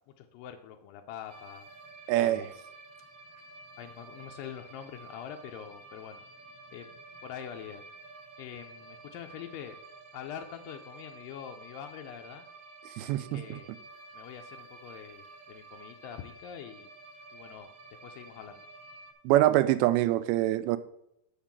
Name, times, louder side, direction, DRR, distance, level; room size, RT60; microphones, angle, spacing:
voice 1, 0.2-1.7 2.1-2.6 3.8-6.2 6.7-7.8 8.4-9.8 10.1-12.4 13.0-13.7 14.1-16.9 17.3-17.7 18.0-18.7, left 9 dB, 80° left, 2.1 m, -44 dB
sound 1, 1.3-19.1, right 3 dB, 65° right, 1.5 m, -51 dB
voice 2, 2.1-2.5 13.0-13.6 19.3-20.8, right 14 dB, 85° right, 2.4 m, -25 dB
6.6 x 5.5 x 7.3 m
omnidirectional pair, 4.4 m